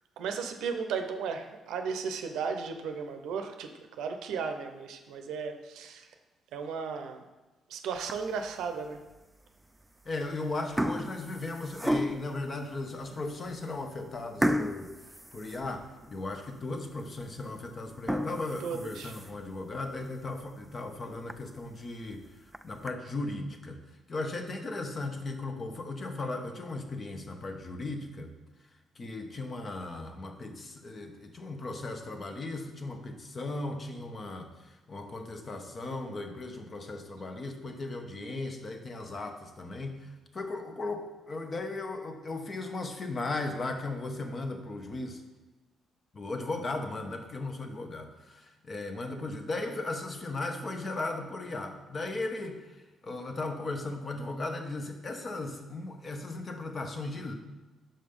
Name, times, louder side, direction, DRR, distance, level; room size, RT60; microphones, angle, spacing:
voice 1, 0.2-6.1 6.5-7.2 7.7-9.0 18.6-19.1, right 5 dB, 85° right, 6 dB, 0.7 m, -35 dB
sound 1, 8.0-8.5 9.1-9.2 10.0-10.3 10.5-12.4 13.0-13.1 13.5-13.6 14.4-16.2 16.6-16.7 17.2-17.3 17.9-19.5 20.0-20.1 20.5-20.6 20.9-21.0 21.3-21.4 22.3-22.9, equal, 5° right, 0.3 m, -33 dB
voice 2, 10.0-14.9 15.3-22.2 22.6-23.8 24.1-28.3 29.0-45.2 46.1-52.8 53.0-57.3, left 2 dB, 40° left, 5 dB, 0.9 m, -37 dB
5.6 x 5.1 x 5.3 m, 1.2 s
cardioid pair, 90°, 0 cm